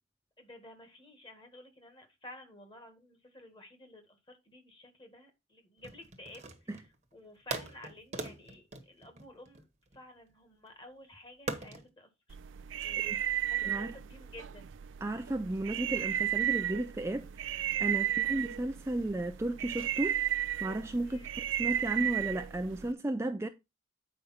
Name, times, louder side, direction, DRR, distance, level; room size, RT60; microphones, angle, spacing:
voice 1, 0.4-9.7 9.9-12.1 12.8-13.1 13.4-14.7 18.0-18.4 21.0-21.3, left 1 dB, 25° left, 1.8 m, -53 dB
sound 1, 5.8-6.9 7.5-10.0 11.5-11.9, right 3 dB, 35° right, 1.1 m, -41 dB
sound 2, 12.3-22.9, right 11 dB, 80° right, 0.4 m, -34 dB
voice 2, 13.6-14.0 15.0-20.2 20.6-21.2 21.6-23.5, right 1 dB, 15° right, 0.4 m, -34 dB
8.5 x 5.1 x 4.3 m
head